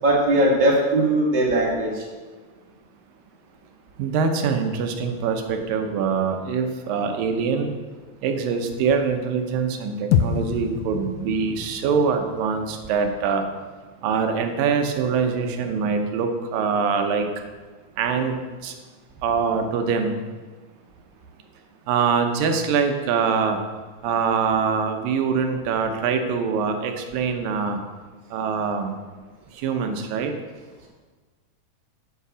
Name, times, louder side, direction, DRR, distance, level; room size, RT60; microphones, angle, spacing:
voice 1, 0.0-2.0, right 1 dB, 15° right, -4 dB, 1.8 m, -19 dB
voice 2, 4.0-7.7 8.2-13.4 14.0-17.3 18.0-18.4 18.6-18.7 19.2-20.2 21.9-23.6 24.0-27.8 28.3-29.0 29.5-30.3, right 5 dB, 80° right, 5 dB, 2.6 m, -24 dB
sound 1, 10.1-14.5, left 8 dB, 80° left, 2.2 m, -28 dB
8.3 x 7.7 x 6.2 m, 1.4 s
omnidirectional pair, 4.0 m